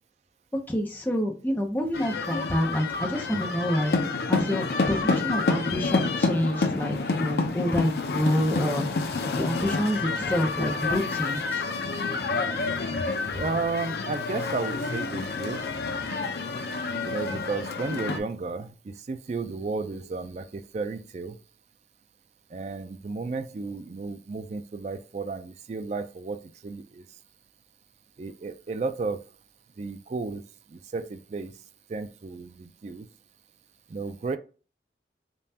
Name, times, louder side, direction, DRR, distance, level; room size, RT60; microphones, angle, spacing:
voice 1, 0.7-4.0 4.3-9.1 9.3-11.6 13.3-13.4, left 1 dB, 10° left, 1 dB, 0.6 m, -28 dB
sound 1, 1.9-18.2, left 3 dB, 60° left, 0.5 m, -28 dB
voice 2, 13.3-15.7 17.0-21.4 22.5-26.4 26.6-27.0 28.2-29.2 29.8-30.4 30.7-31.5 31.9-33.1 33.9-34.4, right 4 dB, 40° right, 10 dB, 0.3 m, -33 dB
5.3 x 2.3 x 2.7 m, 0.36 s
head